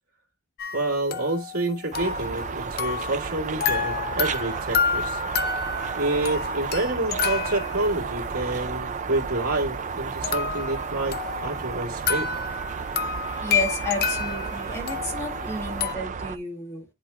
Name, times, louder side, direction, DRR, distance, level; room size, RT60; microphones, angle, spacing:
sound 1, 0.6-3.3 3.6-8.3 10.2-15.9, left 5 dB, 45° left, 0.6 m, -30 dB
voice 1, 0.7-5.2 6.0-12.3, right 2 dB, 85° right, 1.9 m, -28 dB
sound 2, 1.9-16.4, right 5 dB, 35° right, 0.4 m, -32 dB
sound 3, 4.3-5.1 5.7-6.6 7.2-7.8 8.2-8.7, right 3 dB, 15° right, 2.3 m, -54 dB
voice 2, 13.4-16.8, left 1 dB, 15° left, 1.9 m, -32 dB
10.5 x 4.2 x 2.3 m
head